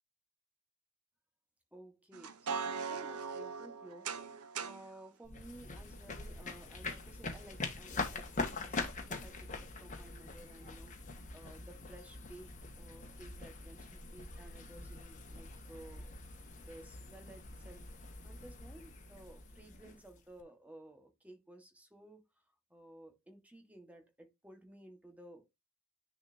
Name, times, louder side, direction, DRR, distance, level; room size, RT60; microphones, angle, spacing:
voice 1, 1.7-16.2 16.5-17.9 18.2-25.6, right 1 dB, 5° right, 1.7 m, -55 dB
sound 1, 2.1-4.9, right 5 dB, 90° right, 0.9 m, -40 dB
sound 2, 5.2-20.4, left 3 dB, 35° left, 1.7 m, -44 dB
10.0 x 4.2 x 2.8 m
head